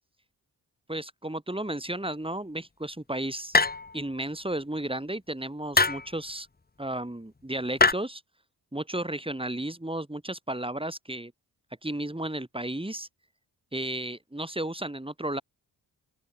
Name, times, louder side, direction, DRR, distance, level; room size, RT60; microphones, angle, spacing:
voice 1, 0.9-3.6 3.9-6.5 6.8-8.2 8.7-11.3 11.8-13.1 13.7-15.4, right 1 dB, 10° right, 6.1 m, -33 dB
sound 1, 3.5-4.1 5.7-6.1 7.8-7.9, left 3 dB, 20° left, 1.2 m, -22 dB
open air
supercardioid pair, 40°, 45 cm